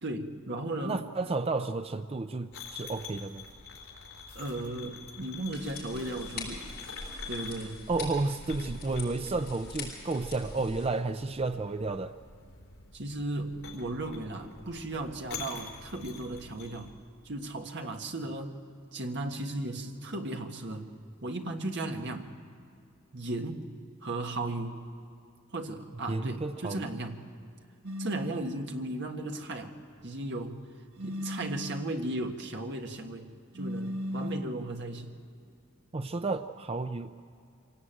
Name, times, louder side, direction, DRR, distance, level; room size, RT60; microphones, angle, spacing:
voice 1, 0.0-1.0 4.3-6.7 7.3-7.8 12.9-16.9 17.2-18.6 18.9-20.9 21.2-22.3 23.1-23.6 24.0-24.8 25.5-27.2 28.0-29.7 30.0-30.6 31.0-33.3 33.5-35.1, right 2 dB, 55° right, 4 dB, 1.6 m, -36 dB
voice 2, 0.8-3.4 7.9-12.1 26.1-26.9 35.9-37.2, right 3 dB, 25° right, 9 dB, 0.5 m, -32 dB
sound 1, 2.5-16.9, left 4 dB, 75° left, 4.3 m, -46 dB
sound 2, 5.5-10.9, left 3 dB, 45° left, 7.1 m, -43 dB
sound 3, 27.8-28.5 31.0-31.9 33.5-34.6, left 1 dB, 90° right, 1.2 m, -36 dB
25.0 x 17.5 x 9.0 m, 2.5 s
head